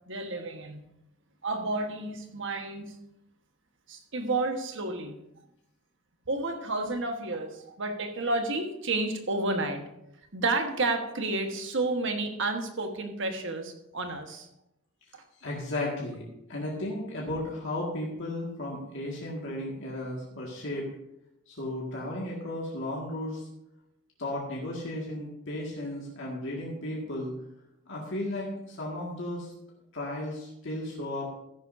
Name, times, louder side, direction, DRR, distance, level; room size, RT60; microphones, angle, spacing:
voice 1, 0.1-0.8 1.4-2.9 3.9-5.2 6.3-9.8 10.3-14.5 15.1-15.2, right 2 dB, 60° right, 5 dB, 1.4 m, -31 dB
voice 2, 15.4-16.2 16.5-20.9 21.5-23.5 24.2-27.3 27.9-29.5 29.9-31.3, left 1 dB, 60° left, -4 dB, 2.0 m, -34 dB
14.0 x 10.5 x 2.7 m, 0.83 s
head